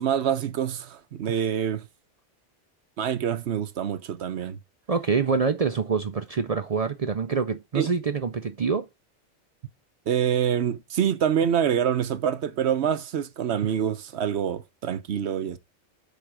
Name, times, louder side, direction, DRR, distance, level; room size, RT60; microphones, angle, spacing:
voice 1, 0.0-1.9 3.0-4.6 7.7-7.9 10.1-15.6, right 9 dB, 65° right, 1.0 m, -26 dB
voice 2, 4.9-8.9, right 5 dB, 50° right, 0.5 m, -26 dB
8.2 x 3.6 x 6.0 m
omnidirectional pair, 1.2 m